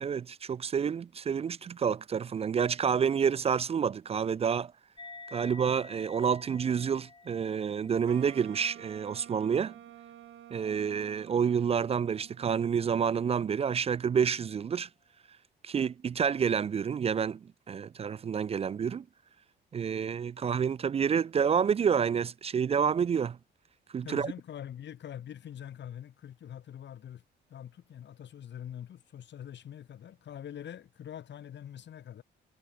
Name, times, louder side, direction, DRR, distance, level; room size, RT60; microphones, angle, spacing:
voice 1, 0.0-4.7 5.3-9.8 10.5-14.9 15.6-19.0 19.7-23.4 23.9-24.3, right 7 dB, 30° right, 0.3 m, -29 dB
sound 1, 5.0-11.9, left 4 dB, 25° left, 1.9 m, -53 dB
Wind instrument woodwind instrument, 8.1-13.1, right 12 dB, 75° right, 2.2 m, -51 dB
voice 2, 24.0-27.2 27.5-32.2, left 10 dB, 65° left, 3.5 m, -44 dB
cardioid pair, 90°, 20 cm